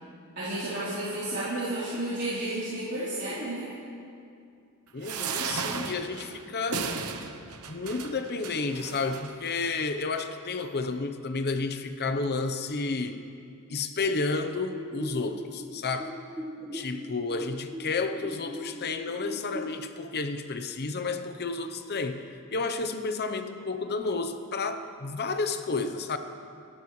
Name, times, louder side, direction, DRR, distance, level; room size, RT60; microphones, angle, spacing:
voice 1, 0.4-3.6, right 1 dB, 50° right, -11 dB, 3.7 m, -32 dB
voice 2, 4.9-6.9 7.7-13.2 13.7-16.1 16.7-26.2, left 3 dB, 45° left, 9 dB, 0.8 m, -31 dB
sound 1, 5.0-9.6 10.2-10.3 10.6-10.7, right 5 dB, 80° right, 0.9 m, -35 dB
sound 2, 14.7-19.7, left 1 dB, 10° right, 1.3 m, -40 dB
28.5 x 13.0 x 3.2 m, 2.5 s
head